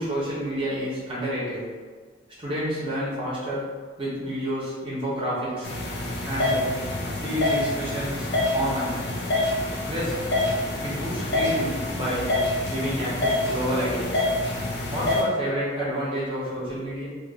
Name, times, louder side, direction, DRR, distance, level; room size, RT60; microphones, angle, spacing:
voice 1, 0.0-1.7 2.4-3.7 4.0-5.7 6.2-6.8 7.2-8.3 8.5-9.0 9.9-10.3 10.8-12.3 12.7-14.2 14.9-17.1, equal, 30° right, -7 dB, 0.9 m, -29 dB
sound 1, 5.6-15.2, left 2 dB, 65° left, 0.5 m, -26 dB
2.7 x 2.5 x 3.9 m, 1.5 s
head